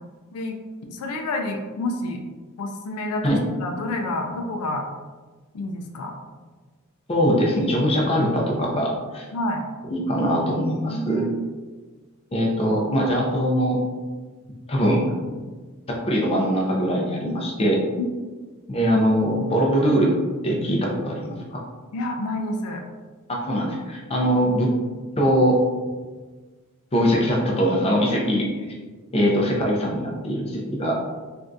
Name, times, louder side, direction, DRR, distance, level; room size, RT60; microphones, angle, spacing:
voice 1, 0.3-2.2 2.6-4.9 5.5-6.2 9.3-9.7 10.9-11.5 17.2-17.3 18.0-18.1 21.9-22.9, left 1 dB, 80° left, 4 dB, 0.4 m, -29 dB
voice 2, 7.1-9.3 9.9-11.2 12.3-13.8 14.7-15.1 15.9-17.8 18.7-20.1 20.4-21.6 23.4-24.7 25.2-25.6 26.9-28.5 29.1-31.0, equal, 25° left, -2 dB, 0.5 m, -22 dB
3.4 x 2.4 x 2.6 m, 1.4 s
head